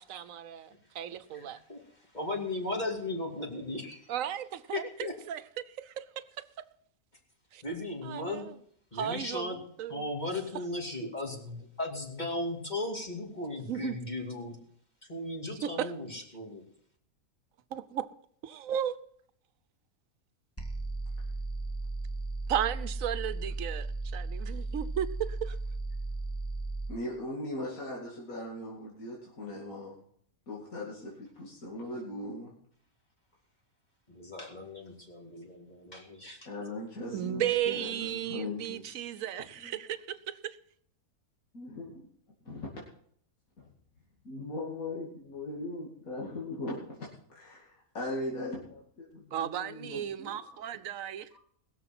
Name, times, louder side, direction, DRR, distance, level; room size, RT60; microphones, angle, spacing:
voice 1, 0.0-1.6 4.1-6.2 7.5-7.6 8.0-8.5 8.9-10.1 13.7-14.0 15.8-15.9 17.7-18.1 18.4-19.0 22.5-25.6 37.1-40.6 49.3-51.4, right 10 dB, 70° right, 1.2 m, -35 dB
voice 2, 1.3-4.2 4.7-5.1 7.6-8.5 8.9-9.6 9.9-14.6 15.1-16.6 34.1-36.4, left 2 dB, 30° left, 2.8 m, -36 dB
sound 1, 20.6-27.0, right 2 dB, 10° left, 1.6 m, -35 dB
voice 3, 26.9-29.9 30.5-32.5 36.4-39.0 39.6-39.8 41.5-42.1 42.4-42.7 43.6-43.7 44.2-50.7 51.3-51.4, left 2 dB, 75° left, 3.0 m, -39 dB
20.5 x 7.0 x 6.0 m
omnidirectional pair, 1.5 m